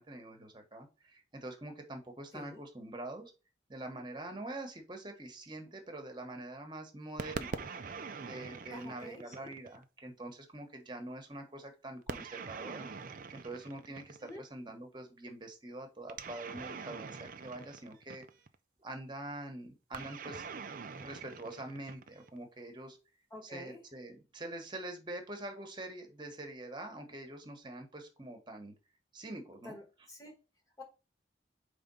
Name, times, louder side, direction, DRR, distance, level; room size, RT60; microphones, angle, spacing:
voice 1, 0.0-3.3 3.7-7.6 8.2-12.9 13.3-18.2 18.8-20.4 20.8-23.0 23.4-28.7 29.1-29.8, right 1 dB, 25° right, 1.2 m, -45 dB
sound 1, 7.2-9.8 12.1-14.4 16.1-18.6 19.9-22.4, right 4 dB, 50° right, 0.5 m, -44 dB
voice 2, 8.7-9.5 14.2-14.4 23.3-23.8 29.6-30.4 30.8-30.9, left 1 dB, 20° left, 1.2 m, -48 dB
5.0 x 3.5 x 5.4 m
head